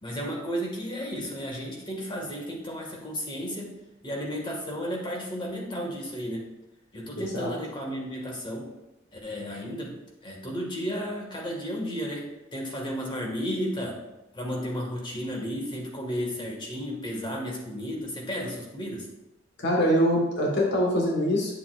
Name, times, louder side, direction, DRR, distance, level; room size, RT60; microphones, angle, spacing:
voice 1, 0.0-3.8 4.0-6.5 6.9-8.7 9.1-14.0 14.3-19.1, equal, 25° left, -1 dB, 1.8 m, -33 dB
voice 2, 7.2-7.5 19.6-21.6, equal, 60° left, -1 dB, 1.4 m, -24 dB
8.7 x 7.1 x 2.4 m, 0.96 s
head